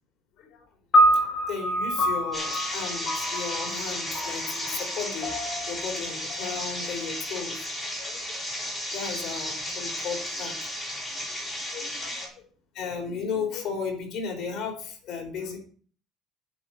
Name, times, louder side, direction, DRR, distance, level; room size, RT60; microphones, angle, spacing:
sound 1, 0.9-7.4, equal, 30° left, 4.2 m, -27 dB
voice 1, 1.5-7.7 8.0-8.4 8.9-10.9 11.3-11.4 11.7-12.3 12.7-15.6, left 5 dB, 55° left, 1 dB, 4.6 m, -35 dB
sound 2, 2.3-12.3, left 1 dB, 10° left, 4.2 m, -33 dB
11.0 x 9.7 x 4.6 m, 0.43 s
cardioid pair, 145°, 0 cm